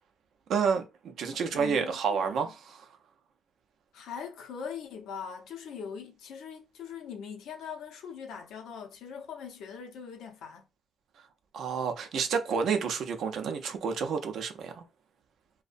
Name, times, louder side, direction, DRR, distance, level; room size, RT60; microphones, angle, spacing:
voice 1, 0.5-2.9 11.5-14.8, right 6 dB, 70° right, 0.4 m, -30 dB
voice 2, 1.3-2.3 3.9-10.7, left 7 dB, 85° left, 0.5 m, -41 dB
2.5 x 2.1 x 2.4 m
cardioid pair, 90°, 0 cm